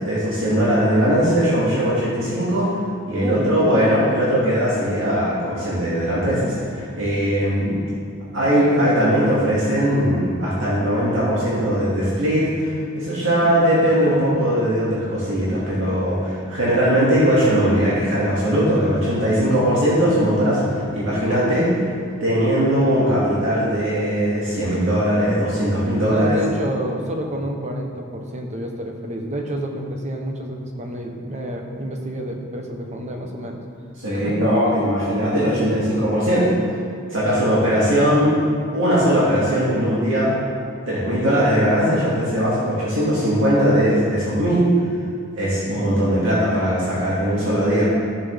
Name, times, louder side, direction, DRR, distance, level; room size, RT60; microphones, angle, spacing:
voice 1, 0.0-2.7 3.1-7.8 8.3-21.7 22.2-26.4 34.0-36.5 37.1-38.3 38.7-40.4 40.9-44.6 45.3-47.8, equal, 70° right, -8 dB, 2.3 m, -19 dB
voice 2, 3.2-3.9 26.1-33.6 34.1-34.5 38.3-38.4, equal, 35° right, 1 dB, 1.1 m, -29 dB
14.0 x 7.2 x 3.6 m, 2.2 s
head